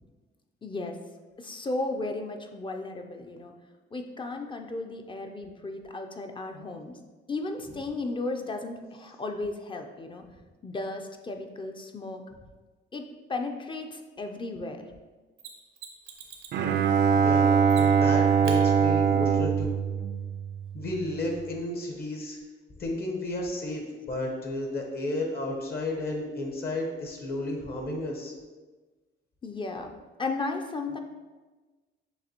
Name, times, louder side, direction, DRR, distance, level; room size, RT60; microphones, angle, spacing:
voice 1, 0.6-1.0 1.4-3.5 3.9-7.0 7.3-10.2 10.6-12.2 12.9-14.8 29.4-29.9 30.2-31.0, left 2 dB, 25° left, 4 dB, 0.4 m, -35 dB
Mechanisms, 15.4-16.6 17.7-18.1 18.4-18.6 21.4-21.5, right 7 dB, 90° right, 0.7 m, -44 dB
Bowed string instrument, 16.5-20.9, right 6 dB, 60° right, 0.4 m, -23 dB
voice 2, 17.1-19.8 20.7-22.4 22.8-28.3, left 1 dB, 50° left, 1 dB, 1.0 m, -33 dB
6.7 x 2.7 x 2.9 m, 1.3 s
cardioid pair, 90°, 20 cm